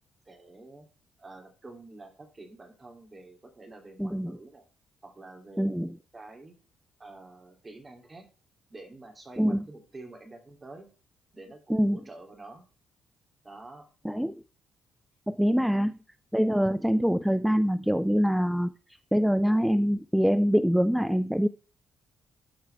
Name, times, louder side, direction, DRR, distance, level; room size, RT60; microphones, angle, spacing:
voice 1, 0.3-0.9 1.2-4.6 5.0-6.5 7.0-8.3 8.7-10.9 11.3-12.6 13.4-13.9, right 2 dB, 25° right, 4 dB, 2.7 m, -48 dB
voice 2, 4.0-4.3 5.6-5.9 9.4-9.6 11.7-12.0 14.0-14.4 15.3-15.9 16.3-18.7 19.1-21.5, equal, ahead, 14 dB, 0.3 m, -24 dB
12.5 x 4.7 x 3.4 m, 0.35 s
cardioid pair, 90°, 0 cm